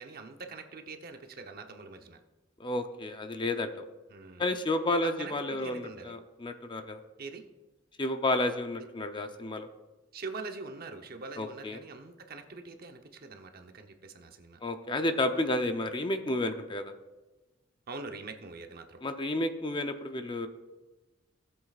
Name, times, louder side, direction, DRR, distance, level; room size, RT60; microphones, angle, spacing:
voice 1, 0.0-2.2 4.1-4.5 5.0-6.1 7.2-7.4 8.8-8.9 10.1-14.6 17.9-19.0, right 3 dB, 50° right, 5 dB, 0.8 m, -43 dB
voice 2, 2.6-3.9 4.4-7.0 8.0-9.7 11.4-11.8 14.6-16.9 19.0-20.5, left 2 dB, 25° left, 7 dB, 0.6 m, -31 dB
16.5 x 7.8 x 2.4 m, 1.1 s
head